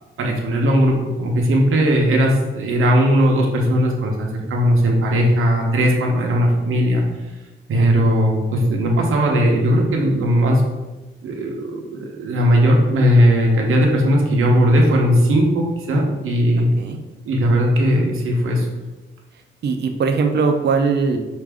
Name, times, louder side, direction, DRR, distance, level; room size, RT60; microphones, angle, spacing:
voice 1, 0.2-7.0 7.7-10.6 11.2-16.7 17.2-18.7, equal, 85° right, 0 dB, 0.8 m, -17 dB
voice 2, 16.6-17.0 19.6-21.2, right 5 dB, 55° right, 5 dB, 0.5 m, -20 dB
4.9 x 2.6 x 3.4 m, 1.1 s
wide cardioid pair, 170°, 21 cm